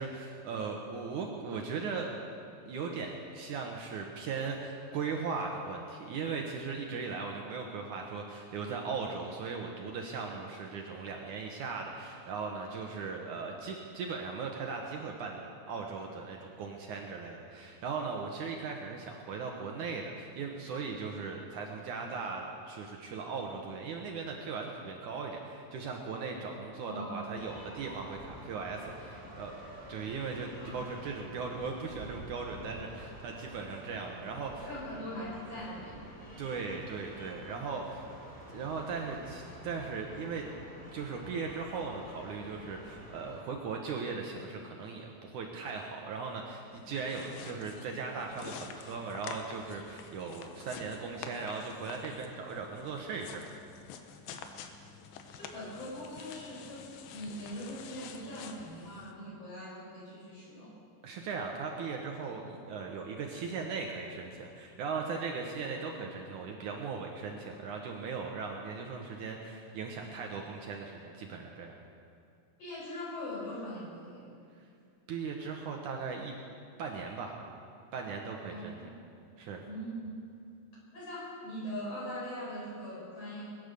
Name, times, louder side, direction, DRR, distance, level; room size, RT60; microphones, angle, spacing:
voice 1, 0.0-2.1 2.7-29.6 29.9-34.7 36.4-38.0 38.5-40.5 40.9-53.5 61.0-71.8 75.1-76.3 76.8-77.3 77.9-78.8 79.4-79.6, right 5 dB, 65° right, 1 dB, 2.3 m, -38 dB
voice 2, 26.8-27.3 28.2-28.3 30.6-30.8 34.6-36.3 36.9-37.0 55.4-60.8 72.6-74.3 78.5-78.9 79.6-80.1 80.9-83.5, equal, 40° left, -6 dB, 6.4 m, -41 dB
sound 1, 27.3-43.4, equal, 10° right, 3.3 m, -49 dB
sound 2, 46.7-59.1, left 6 dB, 80° left, 2.7 m, -48 dB
22.0 x 9.8 x 6.8 m, 2.5 s
omnidirectional pair, 4.1 m